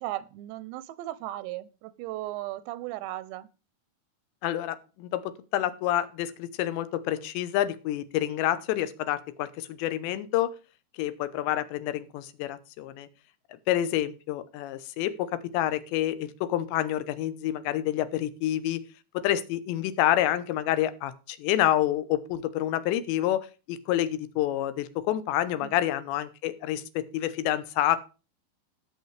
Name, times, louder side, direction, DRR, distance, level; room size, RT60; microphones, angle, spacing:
voice 1, 0.0-3.5 25.6-25.8, right 16 dB, 90° right, 17 dB, 2.9 m, -36 dB
voice 2, 4.4-10.5 11.0-13.1 13.7-18.8 19.1-28.0, left 13 dB, 90° left, 13 dB, 3.1 m, -28 dB
18.0 x 6.8 x 3.3 m, 0.33 s
omnidirectional pair, 5.0 m